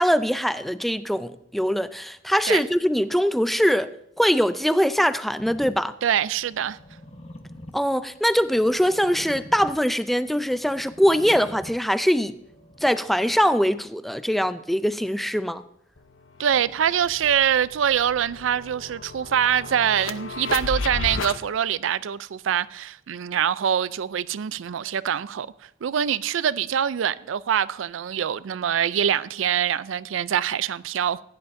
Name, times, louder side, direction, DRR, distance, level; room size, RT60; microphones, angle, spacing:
voice 1, 0.0-3.9 4.2-5.9 7.7-12.3 12.8-15.6, equal, ahead, 0.4 m, -22 dB
sound 1, 5.4-13.4, left 1 dB, 30° left, 1.1 m, -46 dB
voice 2, 6.0-6.8 16.4-31.2, right 9 dB, 75° right, 0.4 m, -24 dB
sound 2, 16.0-16.1 16.4-21.4, left 4 dB, 90° left, 0.7 m, -34 dB
15.5 x 10.5 x 2.6 m
head